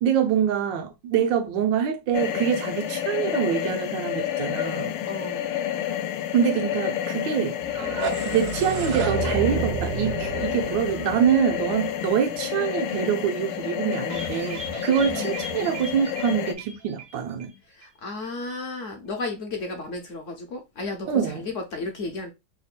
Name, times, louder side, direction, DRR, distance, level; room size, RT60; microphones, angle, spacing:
voice 1, 0.0-5.0 6.3-7.6 8.1-17.5 21.1-21.5, right 8 dB, 90° right, 1.5 m, -25 dB
sound 1, 2.1-16.5, left 10 dB, 85° left, 1.3 m, -30 dB
voice 2, 5.0-5.5 15.0-15.4 17.7-22.3, left 3 dB, 65° left, 0.7 m, -34 dB
sound 2, 7.6-12.5, right 5 dB, 70° right, 1.1 m, -31 dB
sound 3, 14.1-17.6 17.8-17.9 18.2-18.3, right 2 dB, 55° right, 0.7 m, -38 dB
3.5 x 2.2 x 4.0 m
omnidirectional pair, 1.9 m